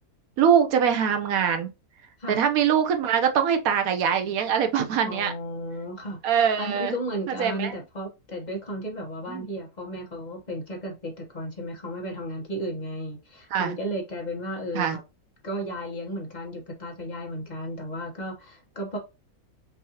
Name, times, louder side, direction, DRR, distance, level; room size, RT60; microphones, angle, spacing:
voice 1, 0.4-1.7 2.3-5.3 6.2-7.0 7.4-7.7 9.3-9.5 13.5-13.8 14.7-15.0, right 8 dB, 75° right, 1.1 m, -23 dB
voice 2, 5.0-6.3 6.6-15.0 15.4-19.0, equal, 30° left, 1.1 m, -34 dB
5.5 x 2.7 x 2.9 m
omnidirectional pair, 1.6 m